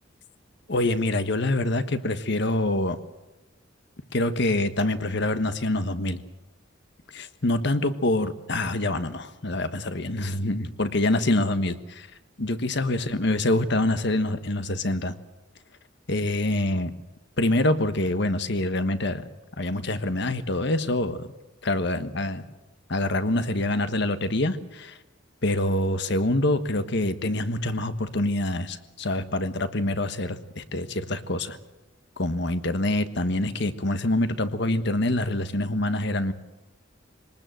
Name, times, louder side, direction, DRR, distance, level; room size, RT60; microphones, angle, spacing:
voice 1, 0.7-3.0 4.1-6.2 7.1-12.1 12.4-15.1 16.1-16.9 17.4-19.3 19.6-21.3 21.6-22.4 22.9-25.0 25.4-31.6 32.2-36.3, left 1 dB, 60° left, 10 dB, 1.4 m, -25 dB
22.5 x 19.5 x 7.8 m, 1.0 s
head